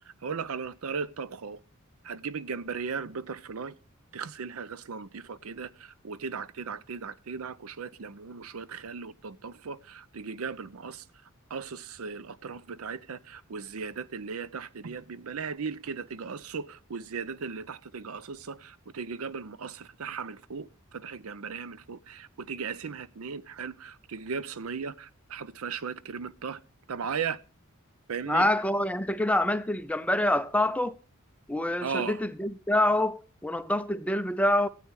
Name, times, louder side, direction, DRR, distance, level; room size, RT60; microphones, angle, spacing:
voice 1, 0.2-1.6 2.0-3.7 4.1-11.0 11.5-26.6 26.9-27.4 28.1-28.5 31.8-32.2, right 5 dB, 85° right, 0.6 m, -37 dB
voice 2, 28.3-31.0 31.5-34.7, left 1 dB, 5° left, 0.5 m, -26 dB
14.0 x 8.6 x 4.7 m
head